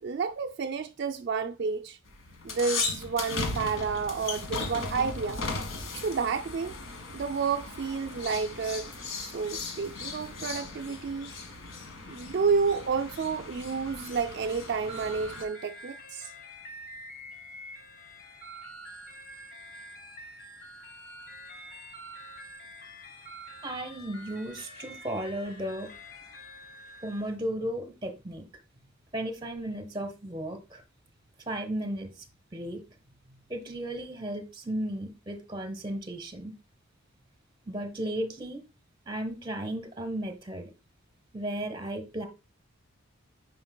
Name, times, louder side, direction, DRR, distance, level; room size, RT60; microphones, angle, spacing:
voice 1, 0.0-2.0 2.4-5.4 5.9-6.8 7.1-8.9 9.2-11.3 12.1-16.3, right 5 dB, 50° right, 0.3 m, -30 dB
sound 1, 2.1-15.4, left 3 dB, 70° left, 1.4 m, -37 dB
sound 2, 13.8-27.3, equal, 45° left, 1.3 m, -46 dB
voice 2, 23.6-25.9 27.0-28.4 29.1-30.8 31.5-32.2 32.5-32.8 33.5-36.5 37.7-38.6 39.0-40.7 41.3-42.3, right 1 dB, 20° right, 0.9 m, -35 dB
9.6 x 5.2 x 2.2 m
head